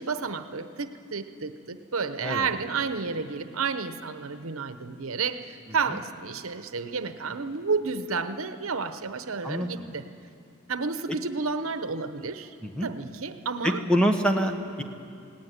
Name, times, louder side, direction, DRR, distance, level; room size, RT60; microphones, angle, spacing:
voice 1, 0.0-10.0 10.7-12.6 12.8-13.8, right 5 dB, 80° right, 10 dB, 0.9 m, -31 dB
voice 2, 9.4-9.8 12.6-12.9 13.6-14.8, equal, 5° left, 4 dB, 1.2 m, -26 dB
19.0 x 17.5 x 9.6 m, 2.4 s
head